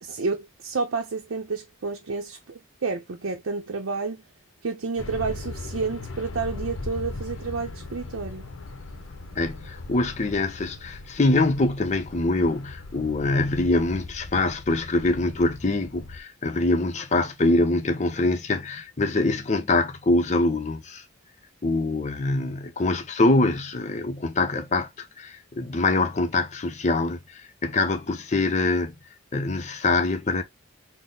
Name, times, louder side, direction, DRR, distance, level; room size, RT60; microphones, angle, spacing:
voice 1, 0.0-4.2 4.6-8.5, right 4 dB, 80° right, 0.6 m, -30 dB
sound 1, 5.0-16.2, left 2 dB, 75° left, 0.7 m, -39 dB
voice 2, 9.4-21.0 21.6-28.9 29.3-30.4, left 2 dB, 35° left, 0.6 m, -24 dB
4.1 x 2.1 x 3.7 m
head